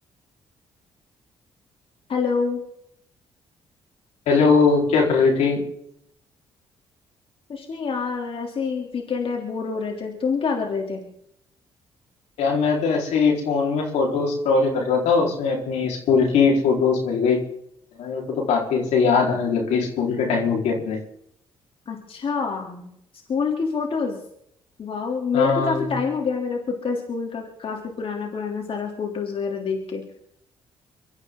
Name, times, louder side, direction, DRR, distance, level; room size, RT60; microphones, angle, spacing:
voice 1, 2.1-2.6 7.5-11.0 21.9-22.9 23.3-24.2 24.8-30.0, left 5 dB, 55° left, 1 dB, 3.3 m, -26 dB
voice 2, 4.3-5.6 12.4-17.4 18.0-21.0 25.3-26.0, left 5 dB, 75° left, 0 dB, 4.6 m, -20 dB
24.5 x 13.5 x 3.9 m, 0.73 s
supercardioid pair, 55°, 11 cm